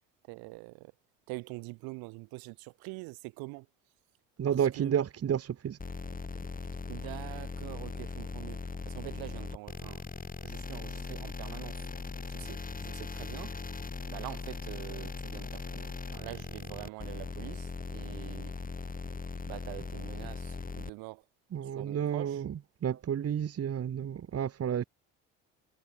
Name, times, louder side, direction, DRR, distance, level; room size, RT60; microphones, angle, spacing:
voice 1, 0.3-0.9 1.3-3.7 4.5-5.0 6.9-10.0 10.4-11.9 12.3-13.6 14.1-18.5 19.5-21.2 21.6-22.5, right 27 dB, 70° right, 4.7 m, -45 dB
voice 2, 4.4-5.8 21.5-22.5 22.8-24.8, right 9 dB, 40° right, 1.9 m, -31 dB
sound 1, 5.8-20.9, left 4 dB, 20° left, 3.3 m, -39 dB
hypercardioid pair, 55°, 37 cm